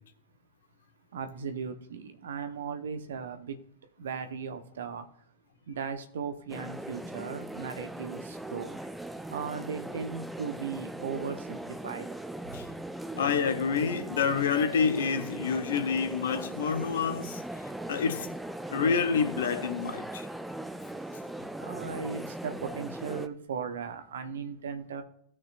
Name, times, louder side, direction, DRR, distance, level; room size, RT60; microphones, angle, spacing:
voice 1, 1.1-3.6 4.0-5.0 5.7-8.8 9.3-12.1 21.6-25.0, right 6 dB, 65° right, 1.1 m, -37 dB
sound 1, 6.5-23.3, right 1 dB, 5° right, 0.6 m, -39 dB
voice 2, 13.1-17.4 17.9-18.3 18.7-20.3, left 6 dB, 60° left, 1.0 m, -28 dB
16.5 x 6.2 x 2.5 m
figure-of-eight pair, 90°, 0 cm